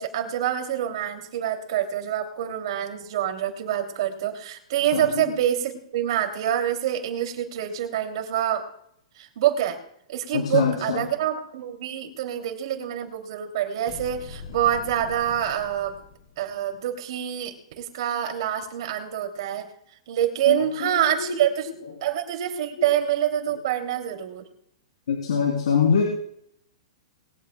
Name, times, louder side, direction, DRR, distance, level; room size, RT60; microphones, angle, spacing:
voice 1, 0.0-8.6 9.2-9.8 10.1-15.9 16.4-19.7 20.1-21.7 22.0-24.4, right 10 dB, 60° right, 3 dB, 2.9 m, -26 dB
voice 2, 4.9-5.2 10.3-11.1 20.5-21.4 21.8-21.9 22.8-22.9 25.1-26.0, left 6 dB, 85° left, 0 dB, 3.2 m, -24 dB
sound 1, 13.9-16.6, left 5 dB, 65° left, 2.9 m, -42 dB
21.0 x 15.5 x 2.3 m, 0.71 s
hypercardioid pair, 155°, 3 cm